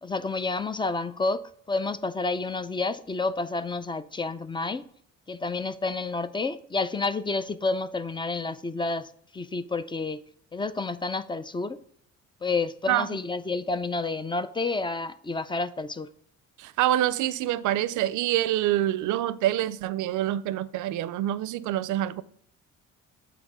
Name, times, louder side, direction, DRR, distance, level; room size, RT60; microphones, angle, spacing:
voice 1, 0.0-4.8 5.3-9.1 9.3-10.2 10.5-11.8 12.4-16.1, left 3 dB, 15° left, 0.3 m, -29 dB
voice 2, 16.6-22.2, right 13 dB, 80° right, 0.5 m, -26 dB
8.4 x 3.0 x 4.7 m
cardioid pair, 90°, 30 cm